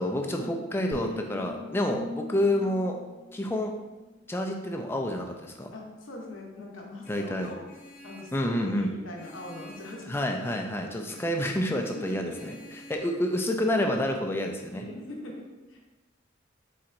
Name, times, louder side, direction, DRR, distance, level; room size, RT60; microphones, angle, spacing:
voice 1, 0.0-3.0 3.3-3.7 4.3-5.7 7.1-7.5 8.3-8.9 10.1-12.5 12.9-14.8, left 1 dB, 10° left, 3 dB, 0.3 m, -28 dB
sound 1, 0.9-4.2, left 2 dB, 45° right, 1.4 m, -43 dB
voice 2, 1.0-2.0 5.7-7.7 8.0-10.5 10.8-10.9 11.9-12.6 14.7-15.8, left 1 dB, 90° left, -1 dB, 0.8 m, -42 dB
Vehicle horn car horn honking, 7.0-8.4 9.1-10.7 11.1-11.4 11.8-13.0, left 1 dB, 45° left, 0.7 m, -50 dB
4.4 x 4.1 x 2.5 m, 1.2 s
head